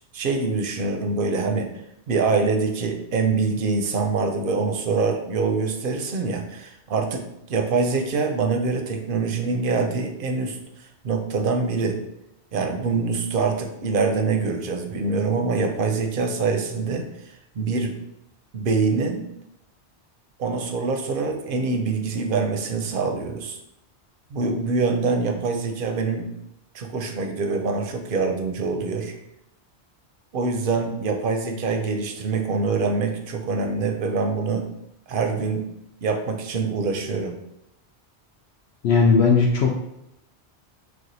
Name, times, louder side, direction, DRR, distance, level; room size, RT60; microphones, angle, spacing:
voice 1, 0.1-1.7 2.1-12.0 12.5-17.1 17.6-18.0 18.5-19.3 20.4-23.6 24.3-26.3 26.7-29.2 30.3-34.7 35.1-35.7 36.0-37.4, right 4 dB, 60° right, 5 dB, 0.7 m, -25 dB
voice 2, 38.8-39.8, left 4 dB, 70° left, 0 dB, 0.8 m, -17 dB
6.1 x 2.3 x 2.6 m, 0.81 s
omnidirectional pair, 1.1 m